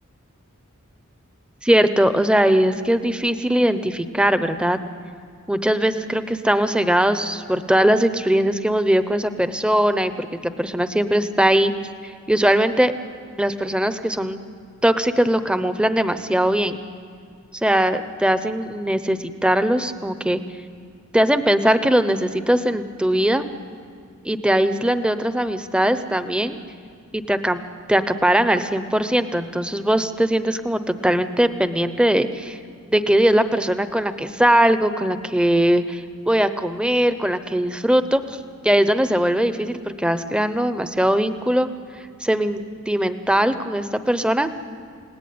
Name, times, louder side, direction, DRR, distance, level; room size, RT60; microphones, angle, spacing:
voice 1, 1.6-4.8 5.5-11.7 12.0-12.9 13.4-14.4 14.8-16.8 17.6-20.4 21.1-23.4 24.2-26.6 27.1-27.6 27.9-32.6 32.9-38.2 38.6-41.7 42.2-44.5, right 1 dB, 5° right, 10 dB, 0.9 m, -20 dB
30.0 x 18.0 x 9.5 m, 2.2 s
head